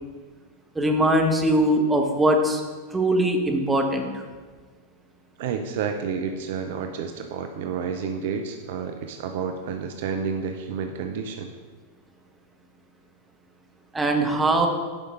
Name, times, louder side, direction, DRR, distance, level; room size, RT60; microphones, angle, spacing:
voice 1, 0.7-2.6 2.9-4.1 13.9-14.7, right 1 dB, 10° right, 3 dB, 1.1 m, -21 dB
voice 2, 5.4-11.5, right 6 dB, 55° right, 6 dB, 0.6 m, -30 dB
11.0 x 5.2 x 3.8 m, 1.4 s
figure-of-eight pair, 90°, 0 cm